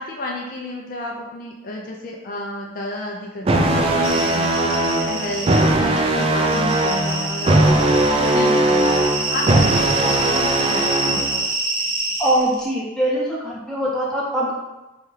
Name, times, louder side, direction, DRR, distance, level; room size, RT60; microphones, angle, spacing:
voice 1, 0.0-3.9 4.1-7.6 8.1-11.2, left 1 dB, 45° left, -1 dB, 0.4 m, -31 dB
sound 1, 3.4-11.4, right 2 dB, 30° right, 0.3 m, -19 dB
sound 2, 4.0-5.7 6.0-12.6, right 2 dB, 90° right, 0.9 m, -26 dB
voice 2, 12.2-14.5, right 1 dB, 5° left, -6 dB, 0.7 m, -22 dB
3.3 x 2.3 x 4.4 m, 1.1 s
head